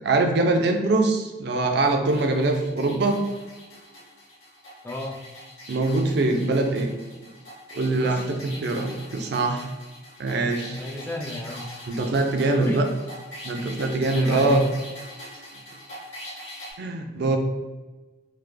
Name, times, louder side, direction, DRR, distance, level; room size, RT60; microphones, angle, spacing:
voice 1, 0.0-3.2 5.7-6.9 7.7-9.7 10.2-10.9 11.9-12.9 13.4-14.6 16.8-17.4, right 2 dB, 60° right, 4 dB, 0.4 m, -23 dB
sound 1, 1.8-16.7, left 1 dB, 65° left, 1.4 m, -42 dB
voice 2, 4.8-5.2 7.9-8.3 10.8-11.7 12.5-12.9 14.2-14.6 17.2-17.4, left 1 dB, 10° left, 1 dB, 0.3 m, -33 dB
3.2 x 2.1 x 3.3 m, 1.2 s
head